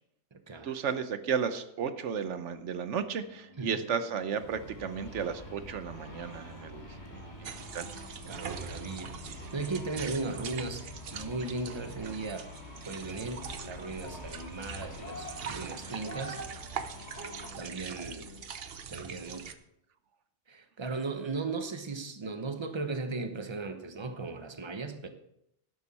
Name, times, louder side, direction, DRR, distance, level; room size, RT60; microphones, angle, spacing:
voice 1, 0.6-7.9, right 7 dB, 85° right, 11 dB, 1.2 m, -34 dB
sound 1, 2.1-18.5, left 2 dB, 70° left, 1.8 m, -54 dB
sound 2, 4.2-17.5, left 1 dB, 40° left, 2.3 m, -46 dB
sound 3, 7.4-19.5, right 6 dB, 60° right, 1.0 m, -43 dB
voice 2, 8.2-9.2 9.5-12.5 12.8-16.4 17.5-18.3 18.9-19.6 20.5-25.1, right 3 dB, 25° right, 7 dB, 1.0 m, -37 dB
11.5 x 11.5 x 4.2 m, 0.79 s
omnidirectional pair, 1.2 m